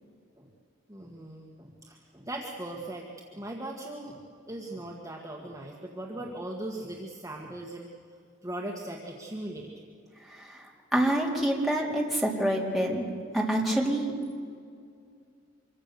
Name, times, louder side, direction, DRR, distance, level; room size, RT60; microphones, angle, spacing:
voice 1, 0.9-4.2 4.5-7.9 8.4-9.7, right 1 dB, 15° right, -1 dB, 1.8 m, -39 dB
voice 2, 10.9-13.1 13.3-14.1, right 1 dB, ahead, -3 dB, 4.0 m, -26 dB
26.0 x 23.5 x 7.0 m, 2.3 s
head